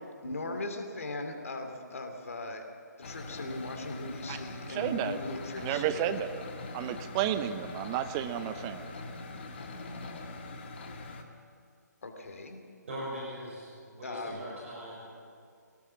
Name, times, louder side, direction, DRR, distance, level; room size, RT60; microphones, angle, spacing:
voice 1, 0.2-2.6 3.0-5.8 12.0-12.6 14.0-14.4, left 2 dB, 50° left, 5 dB, 2.7 m, -38 dB
sound 1, 3.0-11.2, left 2 dB, 35° left, 1.8 m, -43 dB
voice 2, 4.6-5.2 5.6-6.4 6.7-8.9, right 10 dB, 15° right, 11 dB, 0.7 m, -32 dB
voice 3, 12.8-15.1, right 1 dB, 45° right, -4 dB, 6.2 m, -41 dB
22.5 x 18.5 x 7.3 m, 2.3 s
figure-of-eight pair, 145°, 10 cm